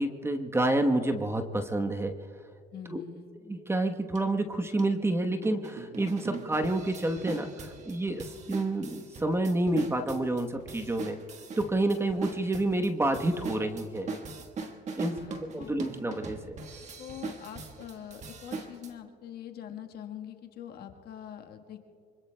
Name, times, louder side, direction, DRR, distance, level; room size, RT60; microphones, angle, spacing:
voice 1, 0.0-2.1 2.9-3.0 3.5-11.2 11.6-14.1 15.0-16.6, right 2 dB, 15° right, 5 dB, 1.1 m, -29 dB
voice 2, 2.7-3.3 15.0-15.9 17.0-21.8, left 9 dB, 55° left, 4 dB, 1.4 m, -44 dB
sound 1, 4.1-4.2 4.8-4.9 5.4-18.9, right 4 dB, 35° right, 1.4 m, -41 dB
26.0 x 25.0 x 2.2 m, 2.3 s
supercardioid pair, 100°, 19 cm